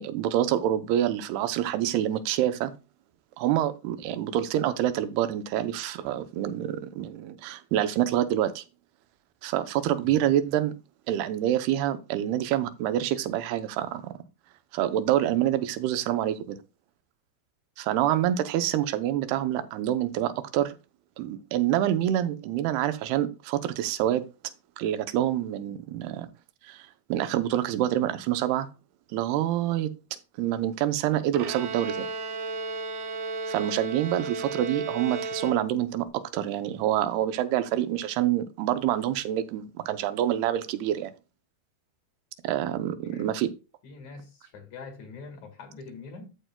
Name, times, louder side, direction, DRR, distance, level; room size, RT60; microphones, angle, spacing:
voice 1, 0.0-2.7 3.4-8.6 9.4-10.7 11.1-14.1 14.7-16.6 17.8-20.8 21.2-24.3 24.8-26.3 26.6-26.8 27.1-28.7 29.1-29.9 30.4-32.1 33.5-41.1 42.4-43.5, right 12 dB, 85° right, 2.7 m, -27 dB
Bowed string instrument, 31.3-36.0, right 3 dB, 65° right, 2.0 m, -34 dB
voice 2, 42.8-43.3 43.8-46.3, left 4 dB, 55° left, 2.7 m, -44 dB
13.5 x 6.8 x 2.2 m
omnidirectional pair, 4.5 m